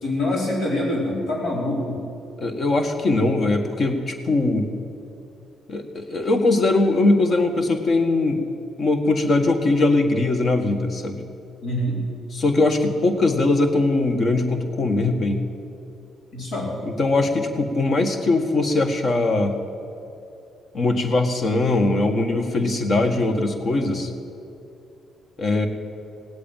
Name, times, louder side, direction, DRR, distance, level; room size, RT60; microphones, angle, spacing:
voice 1, 0.0-2.0 11.6-12.0 16.3-16.7, left 1 dB, 80° left, -3 dB, 4.8 m, -25 dB
voice 2, 2.4-4.7 5.7-8.4 8.8-11.2 12.3-15.4 16.8-19.6 20.7-24.1 25.4-25.7, left 2 dB, 50° left, 5 dB, 1.8 m, -21 dB
17.5 x 8.3 x 9.2 m, 2.7 s
cardioid pair, 90°, 0 cm